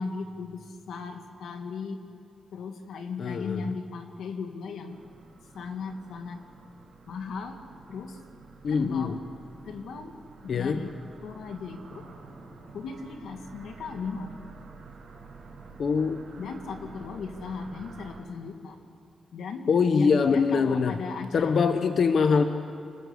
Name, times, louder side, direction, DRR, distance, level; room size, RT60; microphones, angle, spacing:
voice 1, 0.0-2.0 2.5-5.0 5.5-6.5 7.1-7.6 7.9-8.2 8.7-9.2 9.6-10.9 11.2-12.1 12.7-14.4 16.4-18.8 19.3-21.9, left 5 dB, 90° left, 5 dB, 2.3 m, -37 dB
voice 2, 3.2-3.6 8.6-9.2 10.5-10.8 15.8-16.2 19.7-21.0 21.3-22.4, left 5 dB, 50° left, 8 dB, 1.0 m, -23 dB
sound 1, 4.9-18.2, right 4 dB, 50° right, 6.4 m, -49 dB
28.5 x 20.0 x 8.4 m, 2.5 s
wide cardioid pair, 175°, 0 cm